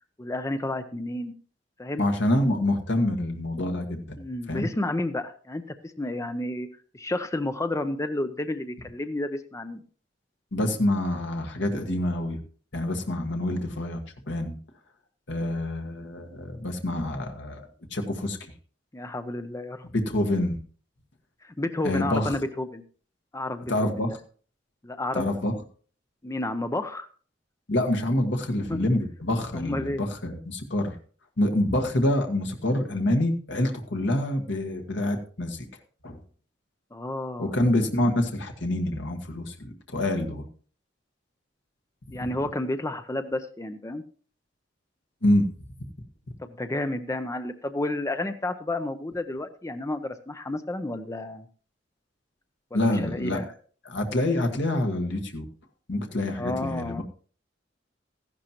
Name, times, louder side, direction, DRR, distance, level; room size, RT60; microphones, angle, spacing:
voice 1, 0.2-1.3 1.8-2.0 4.2-6.7 6.9-9.8 18.9-19.9 21.4-22.8 23.3-24.2 24.8-25.4 26.2-27.1 28.7-28.8 29.5-30.0 36.9-37.6 42.1-44.0 46.4-51.5 52.7-53.5 56.3-57.0, left 1 dB, 15° left, 9 dB, 0.6 m, -31 dB
voice 2, 2.0-4.2 4.5-4.7 10.5-12.4 12.7-14.6 15.3-18.5 19.9-20.6 21.8-22.3 23.7-24.1 25.1-25.5 27.7-31.0 31.4-35.6 36.0-36.2 37.4-40.5 45.2-45.5 52.7-53.4 53.8-55.5 55.9-57.0, left 1 dB, 70° left, 4 dB, 1.5 m, -26 dB
14.5 x 11.5 x 3.0 m, 0.42 s
head